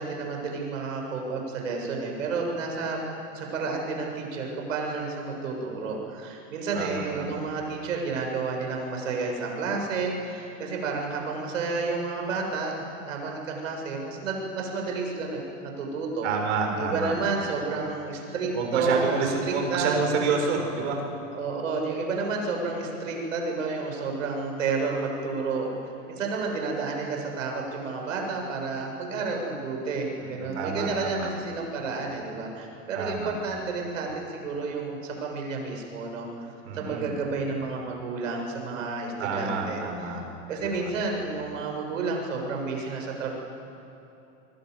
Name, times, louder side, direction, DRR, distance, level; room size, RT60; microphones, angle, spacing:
voice 1, 0.0-3.0 3.3-16.3 16.8-20.0 21.3-25.7 26.1-39.8 40.5-43.3, right 4 dB, 85° right, 1 dB, 7.4 m, -31 dB
voice 2, 6.7-7.4 16.2-17.1 18.5-21.0 30.2-31.3 33.0-33.3 36.6-37.1 39.2-40.2 40.6-40.9, right 4 dB, 65° right, 2 dB, 6.9 m, -29 dB
28.0 x 22.0 x 8.0 m, 2.9 s
supercardioid pair, 125°, 38 cm